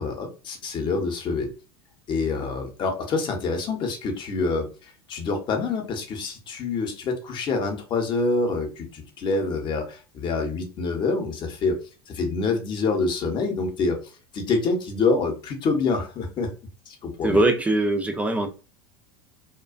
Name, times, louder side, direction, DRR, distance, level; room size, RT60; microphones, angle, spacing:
voice 1, 0.0-1.5 2.1-11.8 12.1-14.0 14.3-16.5 16.9-17.4, left 3 dB, 40° left, 0.8 m, -26 dB
voice 2, 17.2-18.5, right 2 dB, 10° right, 0.4 m, -21 dB
2.4 x 2.2 x 2.3 m
hypercardioid pair, 100°, 13 cm